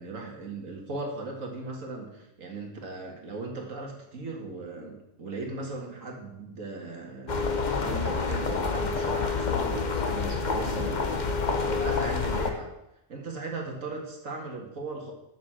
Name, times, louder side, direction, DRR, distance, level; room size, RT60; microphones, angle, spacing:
voice 1, 0.0-7.4 7.8-12.7 13.1-15.1, right 3 dB, 75° right, 1 dB, 2.2 m, -38 dB
sound 1, 7.3-12.5, left 4 dB, 40° left, 1.0 m, -28 dB
7.5 x 7.4 x 6.3 m, 0.87 s
omnidirectional pair, 1.4 m